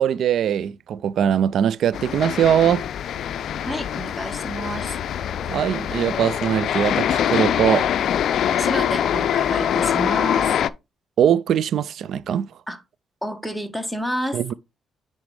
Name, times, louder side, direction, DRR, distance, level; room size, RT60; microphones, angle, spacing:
voice 1, 0.0-2.8 5.5-7.9 11.2-12.5 14.3-14.5, right 9 dB, 70° right, 0.3 m, -21 dB
sound 1, 1.9-10.7, left 9 dB, 70° left, 0.4 m, -24 dB
voice 2, 3.6-5.0 8.6-10.6 12.7-12.8 13.2-14.5, equal, 5° right, 1.2 m, -29 dB
9.4 x 4.2 x 3.3 m
cardioid pair, 90°, 0 cm